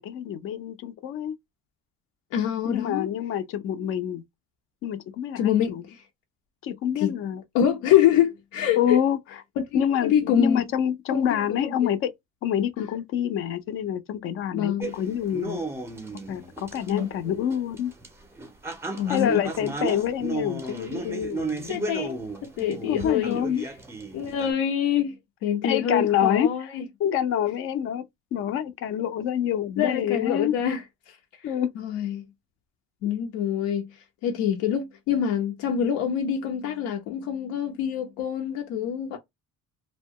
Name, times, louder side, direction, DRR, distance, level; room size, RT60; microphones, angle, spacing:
voice 1, 0.0-1.3 2.7-4.2 4.8-5.8 6.6-7.4 8.8-9.2 9.7-12.1 12.4-15.6 16.3-17.9 19.1-21.9 22.9-23.6 25.6-26.7 27.0-28.0 28.3-30.5 31.4-31.7, left 9 dB, 45° left, 0.4 m, -27 dB
voice 2, 2.3-3.1 5.4-6.0 7.0-7.1 7.5-9.0 9.7-10.7 11.1-11.9 14.5-14.9 16.9-17.4 18.9-19.4 21.7-23.4 24.1-25.1 25.4-26.8 29.8-31.2 31.8-32.2 33.0-33.9 34.2-39.2, left 9 dB, 90° left, 0.7 m, -25 dB
sound 1, 14.8-24.5, right 3 dB, 10° right, 0.5 m, -34 dB
2.7 x 2.2 x 2.7 m
cardioid pair, 170°, 30 cm